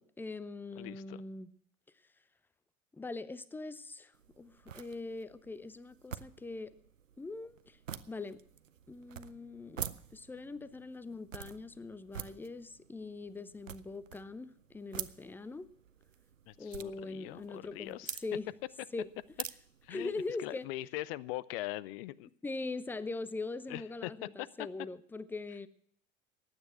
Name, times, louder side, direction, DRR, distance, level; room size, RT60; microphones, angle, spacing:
voice 1, 0.0-1.5 2.9-6.7 7.2-7.8 8.1-8.4 8.9-9.8 10.1-15.7 16.6-18.0 18.2-18.5 18.9-19.1 19.9-20.7 22.4-25.7, left 3 dB, 5° left, 18 dB, 0.6 m, -42 dB
voice 2, 0.8-1.2 16.5-18.2 19.8-22.3 23.7-24.7, left 16 dB, 50° left, 22 dB, 0.6 m, -42 dB
sound 1, 4.1-20.6, right 8 dB, 80° right, 0.6 m, -48 dB
15.5 x 10.0 x 5.8 m, 0.68 s
figure-of-eight pair, 75°, 38 cm